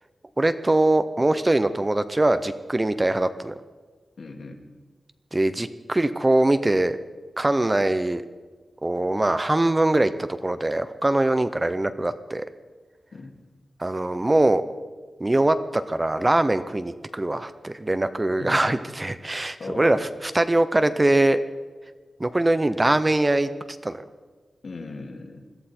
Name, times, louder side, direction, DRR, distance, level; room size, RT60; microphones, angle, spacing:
voice 1, 0.4-3.5 5.3-7.0 7.4-8.2 8.8-12.5 13.8-14.6 15.2-21.4 22.2-23.5 23.8-24.0, right 2 dB, 15° right, 11 dB, 0.5 m, -22 dB
voice 2, 4.2-4.6 13.1-13.3 18.4-18.8 19.6-20.1 24.6-25.4, left 3 dB, 55° left, 2 dB, 2.1 m, -37 dB
21.5 x 14.5 x 4.3 m, 1.4 s
wide cardioid pair, 160°, 0 cm